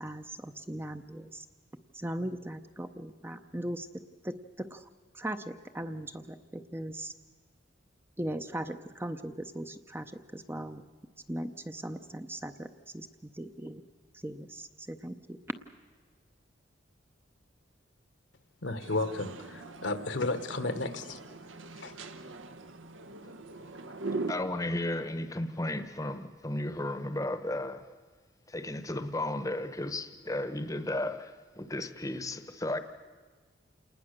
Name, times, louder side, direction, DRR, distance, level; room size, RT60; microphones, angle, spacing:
voice 1, 0.0-1.5 1.9-3.9 4.2-4.9 5.1-7.1 8.2-10.8 11.3-12.7 12.9-13.8 14.1-15.4, right 1 dB, 10° right, 8 dB, 0.6 m, -39 dB
voice 2, 18.6-21.2 21.7-22.0, left 2 dB, 65° left, 10 dB, 1.3 m, -33 dB
sound 1, 18.8-24.3, right 3 dB, 85° right, 1.1 m, -41 dB
voice 3, 24.3-27.8 28.5-32.8, left 1 dB, 15° left, 10 dB, 0.9 m, -34 dB
28.0 x 19.5 x 6.6 m, 1.5 s
head